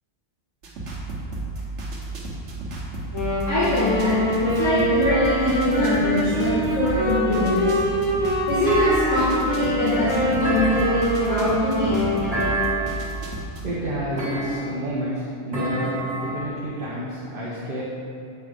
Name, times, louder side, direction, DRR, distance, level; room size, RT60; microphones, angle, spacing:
sound 1, 0.6-13.7, right 2 dB, 90° right, 1.3 m, -32 dB
Wind instrument woodwind instrument, 3.1-12.6, equal, 25° left, 1.2 m, -24 dB
voice 1, 3.5-7.8 8.5-11.9, left 1 dB, 85° left, -12 dB, 1.8 m, -23 dB
Thump thud, 8.7-9.6 10.4-11.3 12.3-13.1 14.2-14.9 15.5-16.5, right 2 dB, 20° right, 1.8 m, -28 dB
voice 2, 13.6-17.8, equal, 55° right, -6 dB, 1.0 m, -29 dB
8.1 x 3.3 x 5.1 m, 2.5 s
omnidirectional pair, 1.2 m